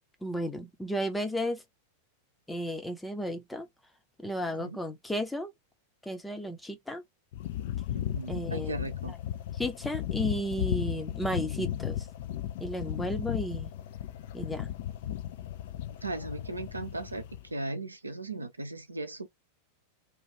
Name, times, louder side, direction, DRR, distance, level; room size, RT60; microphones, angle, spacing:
voice 1, 0.2-1.6 2.5-3.7 4.2-5.5 6.0-7.0 8.3-8.8 9.6-12.1 12.6-13.7 14.3-14.7, equal, 5° left, 0.7 m, -33 dB
sound 1, 7.3-17.5, left 11 dB, 55° left, 0.4 m, -35 dB
voice 2, 7.9-9.1 16.0-19.3, right 2 dB, 80° right, 0.6 m, -37 dB
3.1 x 2.4 x 2.9 m
figure-of-eight pair, 90°, 0 cm